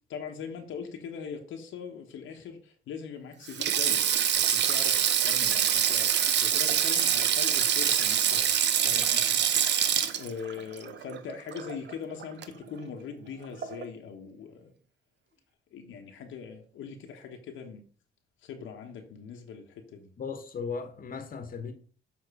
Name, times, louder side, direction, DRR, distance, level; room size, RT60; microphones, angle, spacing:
voice 1, 0.1-8.5 8.8-14.7 15.7-17.8 18.4-20.1, left 6 dB, 80° left, 1.2 m, -41 dB
Sink (filling or washing), 3.5-11.9 12.2-12.4 13.6-13.9, right 9 dB, 60° right, 0.7 m, -25 dB
voice 2, 20.2-21.7, left 5 dB, 45° left, 1.2 m, -36 dB
7.1 x 3.7 x 4.9 m
cardioid pair, 90°, 20 cm